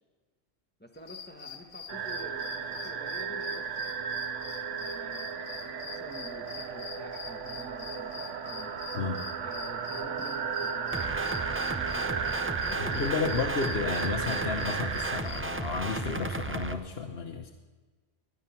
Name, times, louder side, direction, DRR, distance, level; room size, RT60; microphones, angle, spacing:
voice 1, 0.8-3.9 4.7-8.8 9.4-10.9 11.8-13.1, equal, 10° left, 3 dB, 1.3 m, -49 dB
sound 1, 0.9-15.4, left 6 dB, 85° left, 1.5 m, -46 dB
sound 2, 1.9-15.2, right 6 dB, 80° right, 1.2 m, -35 dB
sound 3, 10.9-16.7, right 2 dB, 15° right, 0.4 m, -34 dB
voice 2, 12.7-17.5, left 5 dB, 55° left, 1 dB, 1.2 m, -32 dB
20.5 x 11.5 x 5.8 m, 1.3 s
omnidirectional pair, 1.3 m